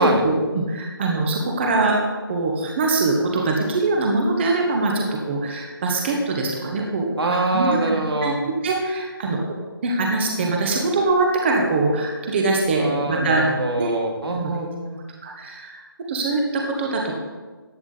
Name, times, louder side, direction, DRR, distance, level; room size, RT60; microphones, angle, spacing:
voice 1, 0.0-2.0 2.3-8.0 8.2-9.4 9.8-13.4 13.8-13.9 14.3-14.5 15.2-15.8 16.1-17.1, right 2 dB, 30° right, 0 dB, 1.5 m, -23 dB
voice 2, 7.2-8.4 12.8-15.0, right 2 dB, 80° right, 0 dB, 2.7 m, -24 dB
14.5 x 9.1 x 4.1 m, 1.3 s
figure-of-eight pair, 165°, 13 cm